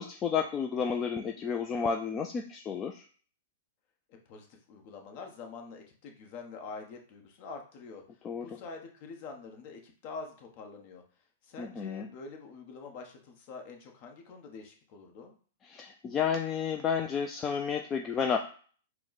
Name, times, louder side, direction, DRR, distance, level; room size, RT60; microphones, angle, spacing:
voice 1, 0.0-3.0 8.2-8.5 11.6-12.1 15.6-18.4, left 6 dB, 25° left, 4 dB, 0.4 m, -31 dB
voice 2, 4.1-8.0 8.4-11.0 11.4-15.3, left 4 dB, 45° left, 3 dB, 1.1 m, -46 dB
4.6 x 2.2 x 4.1 m, 0.43 s
hypercardioid pair, 125°, 0 cm